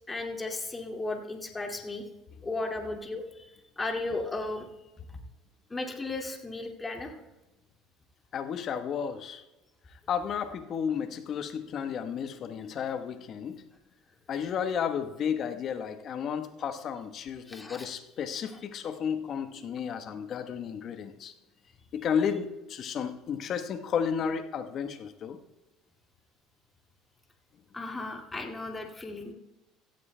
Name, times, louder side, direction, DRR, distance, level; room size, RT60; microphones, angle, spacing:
voice 1, 0.1-2.0 2.4-3.5 3.8-4.7 5.7-7.1 17.5-17.9 27.7-29.3, left 2 dB, 20° left, 2 dB, 2.2 m, -35 dB
voice 2, 8.3-9.4 10.1-13.6 14.3-21.3 21.9-25.4, left 7 dB, 50° left, 8 dB, 1.1 m, -32 dB
16.0 x 14.5 x 2.2 m, 1.0 s
hypercardioid pair, 70°, 0 cm